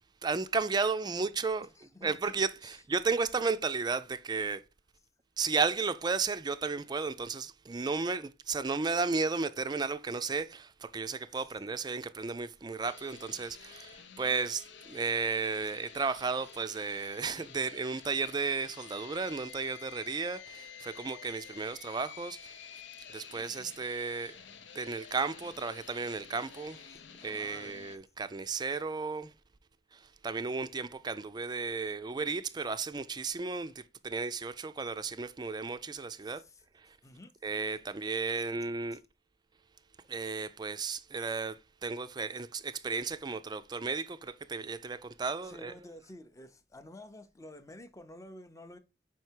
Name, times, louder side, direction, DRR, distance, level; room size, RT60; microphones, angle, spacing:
voice 1, 0.2-1.7 2.0-4.6 5.4-22.6 23.1-24.4 24.7-26.8 27.2-29.3 29.9-36.4 36.7-37.0 37.4-39.0 40.1-45.7, right 4 dB, 25° right, 0.4 m, -34 dB
voice 2, 1.8-2.4 2.6-2.8 27.2-27.8 36.4-36.6 37.0-37.3 45.4-48.8, left 1 dB, 15° left, 0.6 m, -50 dB
sound 1, 12.8-28.0, left 7 dB, 75° left, 0.7 m, -50 dB
5.6 x 4.6 x 4.5 m
head